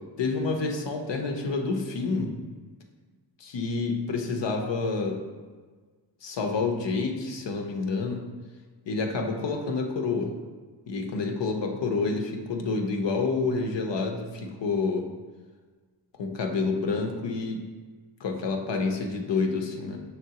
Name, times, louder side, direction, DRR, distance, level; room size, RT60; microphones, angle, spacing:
voice 1, 0.2-2.3 3.4-5.2 6.2-8.2 8.9-10.3 10.9-15.1 16.2-17.6 18.2-20.0, left 4 dB, 80° left, 3 dB, 0.7 m, -28 dB
5.7 x 3.3 x 2.8 m, 1.4 s
wide cardioid pair, 105°, 42 cm